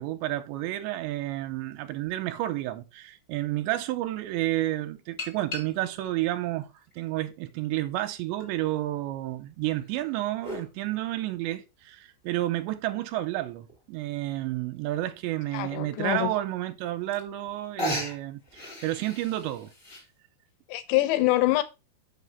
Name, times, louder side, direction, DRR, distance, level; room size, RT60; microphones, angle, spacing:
voice 1, 0.0-6.7 7.0-19.7, right 15 dB, 85° right, 2.9 m, -31 dB
sound 1, 3.4-3.5 5.2-6.1 6.8-7.8 8.4-8.5 9.7-10.7 12.4-12.5 13.0-13.1 13.2-13.3 13.7-14.0 15.0-15.1 15.6-15.7 16.8-16.9 17.1-17.5 17.8-20.0, left 1 dB, 20° left, 1.7 m, -36 dB
voice 2, 15.5-16.3 20.7-21.6, left 17 dB, 80° left, 2.9 m, -25 dB
6.4 x 5.9 x 5.4 m
omnidirectional pair, 5.3 m